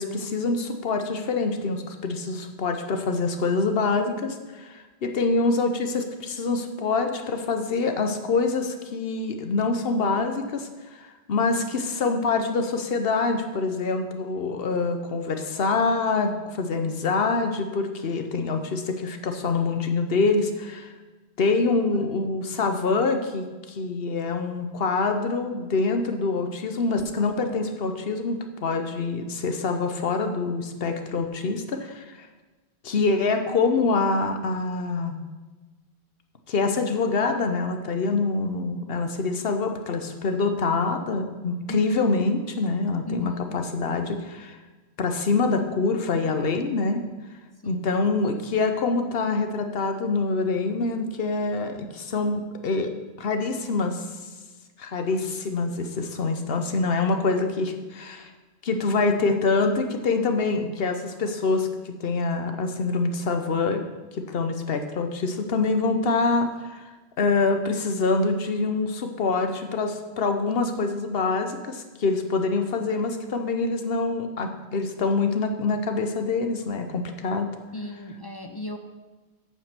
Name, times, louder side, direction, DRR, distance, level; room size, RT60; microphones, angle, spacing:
voice 1, 0.0-20.9 21.4-32.3 32.8-35.2 36.5-44.6 45.0-47.0 47.6-52.9 53.2-54.1 54.8-58.3 58.6-63.8 64.1-66.9 67.2-77.5, left 3 dB, 65° left, 6 dB, 1.1 m, -25 dB
voice 2, 41.7-42.1 43.1-43.6 47.6-47.8 77.7-78.8, left 1 dB, 30° left, 6 dB, 0.4 m, -36 dB
8.8 x 5.4 x 6.7 m, 1.3 s
omnidirectional pair, 1.1 m